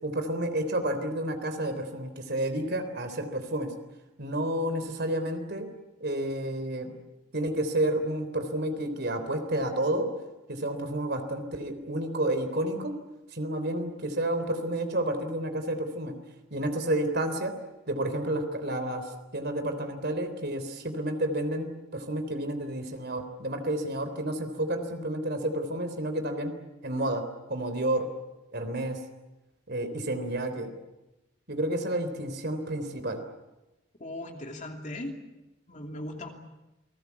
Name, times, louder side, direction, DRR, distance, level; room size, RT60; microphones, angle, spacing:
voice 1, 0.0-3.7 4.2-5.7 6.0-6.9 7.3-10.1 10.5-12.9 13.3-16.1 16.5-17.5 17.9-26.5 26.8-27.2 27.5-28.1 28.5-29.0 29.7-30.7 31.5-33.2, right 1 dB, 50° right, 7 dB, 3.6 m, -30 dB
voice 2, 34.0-35.2 35.7-36.3, left 1 dB, 35° left, 3 dB, 2.8 m, -38 dB
29.0 x 20.0 x 8.4 m, 1.0 s
head